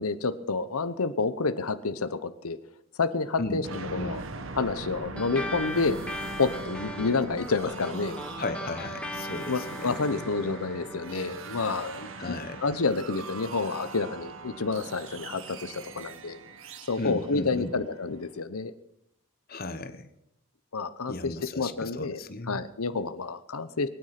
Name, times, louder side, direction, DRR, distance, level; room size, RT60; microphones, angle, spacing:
voice 1, 0.0-2.6 3.0-3.7 3.9-4.2 4.5-6.0 6.4-8.2 9.5-16.4 16.9-18.7 20.7-22.2 22.5-23.9, left 4 dB, 85° left, 12 dB, 0.9 m, -29 dB
voice 2, 3.4-4.2 8.4-10.3 12.2-12.6 17.0-17.7 19.5-20.1 21.1-22.6, left 2 dB, 45° left, 10 dB, 1.1 m, -36 dB
sound 1, 3.6-18.3, right 3 dB, 60° right, 1.3 m, -41 dB
sound 2, 5.2-14.0, left 1 dB, 5° left, 1.3 m, -40 dB
22.5 x 9.6 x 5.9 m, 0.75 s
head